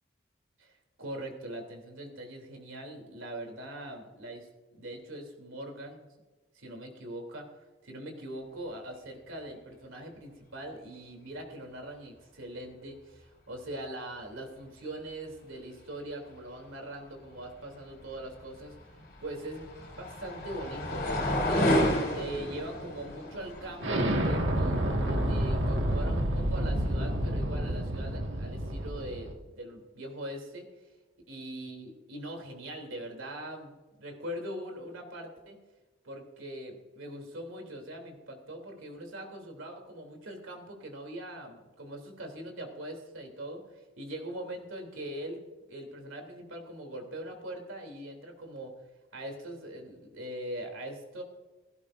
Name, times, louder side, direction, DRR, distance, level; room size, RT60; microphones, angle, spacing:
voice 1, 1.0-6.1 6.5-18.7 19.2-21.6 22.1-30.9 31.3-35.6 36.0-43.6 44.0-45.4 45.7-48.7 49.1-51.2, right 1 dB, 90° right, 3 dB, 3.1 m, -42 dB
sound 1, 18.7-24.0, left 1 dB, 50° left, 4.5 m, -30 dB
Explosion, 23.8-29.3, right 1 dB, 70° right, 1.8 m, -29 dB
17.0 x 15.0 x 2.6 m, 1.2 s
head